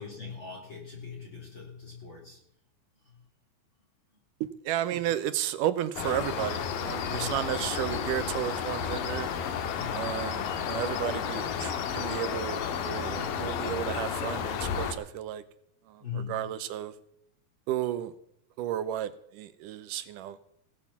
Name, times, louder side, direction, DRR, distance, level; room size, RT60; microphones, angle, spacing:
voice 1, 0.0-2.4 3.0-3.2 7.1-7.4 9.8-10.3 16.0-16.5, left 5 dB, 35° left, -2 dB, 3.8 m, -40 dB
voice 2, 4.4-9.3 9.9-15.4 15.9-16.0 16.3-16.9 17.7-18.1 18.6-20.4, right 11 dB, 75° right, 14 dB, 2.1 m, -33 dB
sound 1, 6.0-14.9, left 7 dB, 70° left, 2.9 m, -32 dB
17.5 x 8.7 x 7.2 m, 0.71 s
omnidirectional pair, 4.1 m